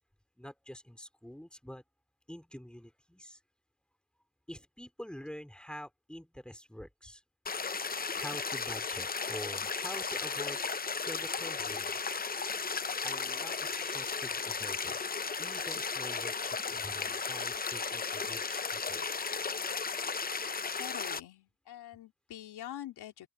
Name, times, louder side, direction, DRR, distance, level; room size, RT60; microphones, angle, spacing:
voice 1, 0.4-1.8 2.3-3.4 4.5-7.2 8.1-10.6 11.1-12.1 13.0-15.0 15.4-19.1, equal, ahead, 4.1 m, -46 dB
sound 1, 7.5-21.2, left 5 dB, 25° left, 0.7 m, -35 dB
voice 2, 20.8-23.3, left 12 dB, 90° left, 3.6 m, -45 dB
open air
cardioid pair, 80°, 38 cm